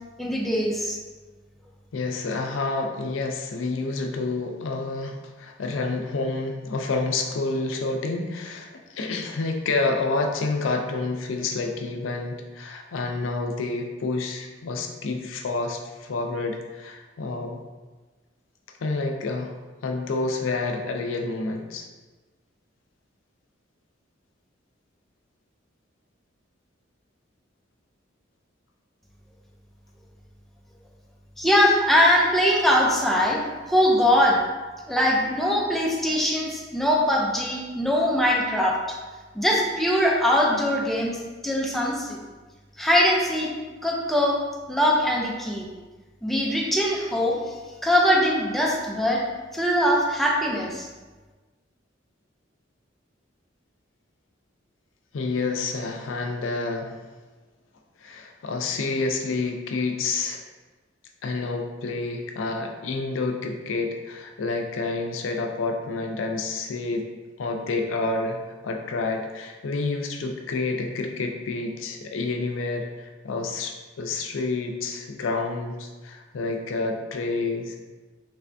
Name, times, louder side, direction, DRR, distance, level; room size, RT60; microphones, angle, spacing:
voice 1, 0.2-1.0 31.4-33.4 33.7-34.4 34.9-38.8 39.3-41.2 41.4-42.2 42.8-43.5 43.8-44.4 44.7-45.7 46.2-47.6 47.8-49.2 49.5-50.9, equal, ahead, -3 dB, 0.5 m, -22 dB
voice 2, 1.9-17.6 18.8-19.5 19.8-21.9 55.1-57.0 58.0-60.4 61.2-67.0 67.4-77.8, left 3 dB, 85° left, 3 dB, 0.4 m, -29 dB
3.2 x 3.2 x 2.6 m, 1.3 s
head